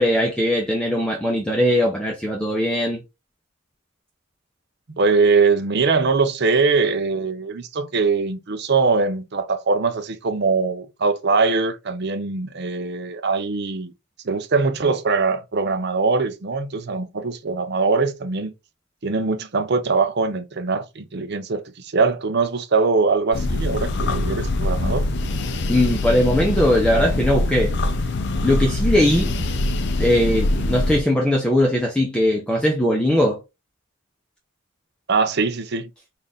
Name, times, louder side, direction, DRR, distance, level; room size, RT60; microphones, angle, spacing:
voice 1, 0.0-3.0 25.7-27.7 28.4-29.3 30.0-33.4, left 1 dB, 5° left, 0.6 m, -20 dB
voice 2, 5.0-13.9 14.2-18.5 19.0-25.1 29.4-29.5 35.1-35.9, right 4 dB, 50° right, 0.6 m, -22 dB
sound 1, 23.3-31.0, left 2 dB, 50° left, 0.5 m, -23 dB
4.2 x 2.5 x 3.5 m
head